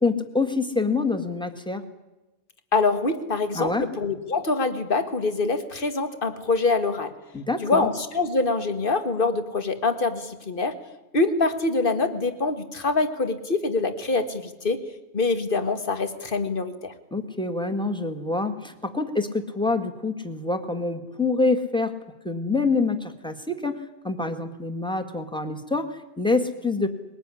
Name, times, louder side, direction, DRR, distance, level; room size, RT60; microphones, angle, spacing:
voice 1, 0.0-1.8 3.5-3.9 7.3-7.9 17.1-21.9 22.2-26.9, left 3 dB, 5° left, 6 dB, 1.7 m, -26 dB
voice 2, 2.7-7.1 7.6-10.7 11.1-14.8 15.1-16.9, left 3 dB, 40° left, 9 dB, 1.9 m, -25 dB
21.5 x 18.5 x 9.9 m, 1.0 s
omnidirectional pair, 1.4 m